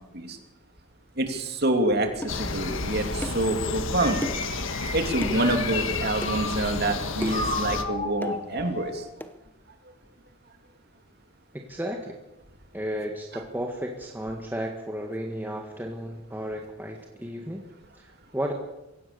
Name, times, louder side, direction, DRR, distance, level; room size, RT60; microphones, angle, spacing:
voice 1, 1.2-4.2 4.9-9.1, right 1 dB, 50° right, 5 dB, 3.0 m, -27 dB
sound 1, 2.2-2.4 3.2-3.5 4.2-4.5 5.2-5.4 6.2-6.4 7.2-7.5 8.2-8.4 9.2-9.3, equal, 10° left, 0.9 m, -34 dB
sound 2, 2.3-7.8, left 3 dB, 60° left, 1.5 m, -31 dB
sound 3, 3.9-6.8 7.3-9.1, left 2 dB, 30° left, 5.7 m, -34 dB
voice 2, 11.5-12.1 12.7-17.6 18.0-18.5, equal, 10° right, 1 dB, 1.7 m, -33 dB
23.5 x 17.0 x 7.0 m, 0.97 s
head